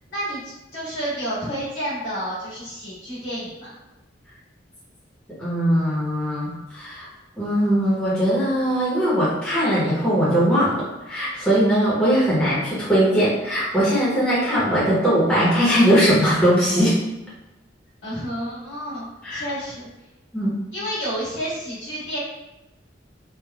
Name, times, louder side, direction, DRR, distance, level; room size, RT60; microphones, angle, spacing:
voice 1, 0.1-3.8 14.2-14.8 18.0-19.0 19.3-19.9 20.7-22.2, equal, 75° left, -10 dB, 1.3 m, -30 dB
voice 2, 5.4-7.1 7.4-10.7 11.1-17.0 19.2-19.4 20.3-20.6, equal, 5° left, -11 dB, 0.7 m, -20 dB
3.3 x 2.1 x 2.2 m, 0.99 s
head